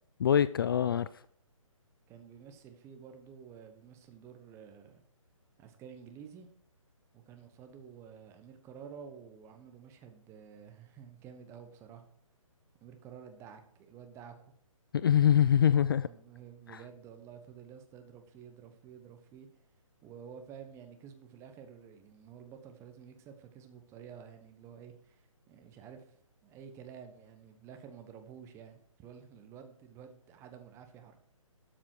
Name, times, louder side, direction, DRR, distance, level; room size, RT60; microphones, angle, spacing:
voice 1, 0.2-1.1 14.9-16.1 16.7-16.8, left 9 dB, 40° left, 0.4 m, -24 dB
voice 2, 2.1-5.0 5.6-6.5 7.1-12.0 12.8-14.3 16.0-19.5 20.0-26.1 26.4-31.2, right 7 dB, 15° right, 1.2 m, -51 dB
12.5 x 7.3 x 4.7 m
figure-of-eight pair, 145°, 18 cm